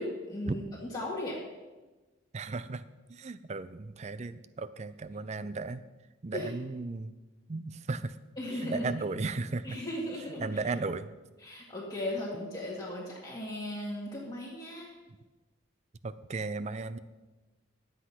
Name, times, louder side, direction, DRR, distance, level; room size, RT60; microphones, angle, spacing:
voice 1, 0.0-1.4 6.3-6.5 8.4-8.9 9.6-10.5 11.4-14.9, left 1 dB, 20° left, -5 dB, 1.9 m, -37 dB
voice 2, 2.3-2.8 3.1-5.8 6.2-7.2 7.5-8.2 8.6-9.8 10.4-11.1 16.0-17.0, right 3 dB, 35° right, 14 dB, 0.5 m, -35 dB
12.0 x 8.1 x 5.8 m, 1.2 s
head